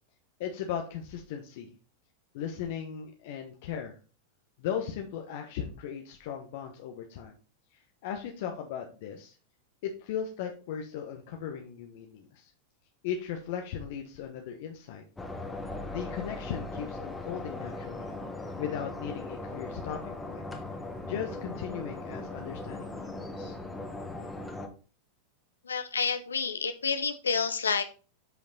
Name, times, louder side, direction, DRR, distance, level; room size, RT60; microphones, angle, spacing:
voice 1, 0.4-1.7 2.3-4.0 4.6-7.3 7.7-9.4 9.8-12.5 13.0-15.0 15.9-18.2 18.6-20.4 21.1-23.5, left 8 dB, 60° left, 3 dB, 1.1 m, -37 dB
sound 1, 15.2-24.7, left 2 dB, 10° left, 1.4 m, -39 dB
voice 2, 25.7-27.8, left 5 dB, 85° left, 10 dB, 0.6 m, -29 dB
8.0 x 5.1 x 4.0 m, 0.36 s
hypercardioid pair, 95°, 0 cm